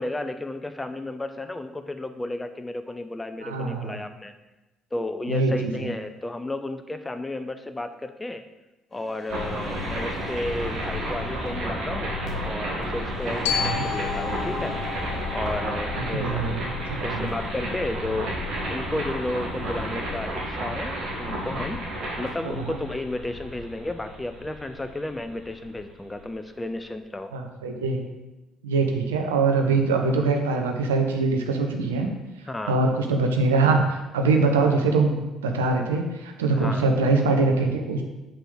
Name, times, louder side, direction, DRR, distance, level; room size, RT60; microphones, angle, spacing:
voice 1, 0.0-4.3 4.9-8.4 8.9-14.8 15.3-16.6 17.0-18.3 18.7-21.8 22.2-27.3 32.5-32.8 36.5-36.9, left 2 dB, 15° left, 8 dB, 0.6 m, -33 dB
voice 2, 3.4-4.0 5.3-5.9 13.5-13.8 15.9-17.3 22.4-22.7 27.3-28.0 28.6-32.1 32.7-38.0, right 3 dB, 85° right, 3 dB, 0.9 m, -23 dB
sound 1, 8.9-16.1, left 2 dB, 40° left, 2.8 m, -43 dB
sound 2, 9.3-26.2, equal, 60° right, 2.2 m, -31 dB
Glockenspiel, 13.4-17.6, left 9 dB, 80° left, 0.6 m, -33 dB
5.8 x 5.2 x 6.4 m, 1.0 s
hypercardioid pair, 50°, 0 cm